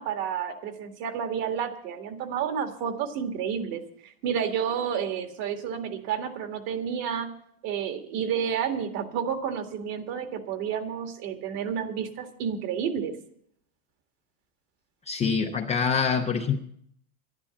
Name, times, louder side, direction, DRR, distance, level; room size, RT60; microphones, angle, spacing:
voice 1, 0.0-7.3 7.6-13.1, right 8 dB, 55° right, 2.0 m, -30 dB
voice 2, 15.1-16.6, left 6 dB, 15° left, 0.4 m, -25 dB
11.0 x 11.0 x 7.1 m
supercardioid pair, 150°, 46 cm